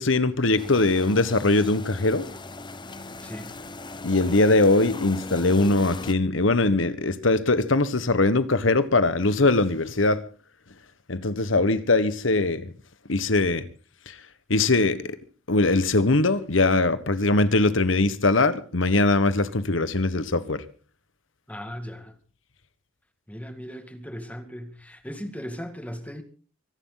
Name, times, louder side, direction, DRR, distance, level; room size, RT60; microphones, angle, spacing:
voice 1, 0.0-2.2 4.0-10.2 11.1-12.7 13.1-13.7 14.5-15.2 15.5-20.6, left 2 dB, 75° left, 1.4 m, -21 dB
sound 1, 0.6-6.1, left 2 dB, 25° left, 1.1 m, -38 dB
voice 2, 3.2-3.5 21.5-22.1 23.3-26.2, equal, 5° left, 2.0 m, -37 dB
24.5 x 12.0 x 4.0 m
head